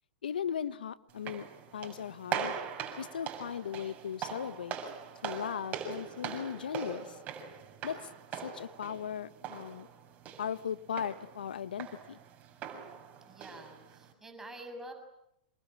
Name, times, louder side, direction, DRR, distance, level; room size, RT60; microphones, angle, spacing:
voice 1, 0.2-2.5 3.0-4.8 5.2-7.2 7.8-8.0 8.4-9.9 10.4-12.2, left 8 dB, 75° left, 14 dB, 1.4 m, -37 dB
sound 1, 1.1-14.1, right 7 dB, 30° right, 7.0 m, -42 dB
voice 2, 13.3-14.9, right 1 dB, 10° right, 4 dB, 6.9 m, -47 dB
27.5 x 23.0 x 8.9 m, 0.79 s
hypercardioid pair, 105°, 5 cm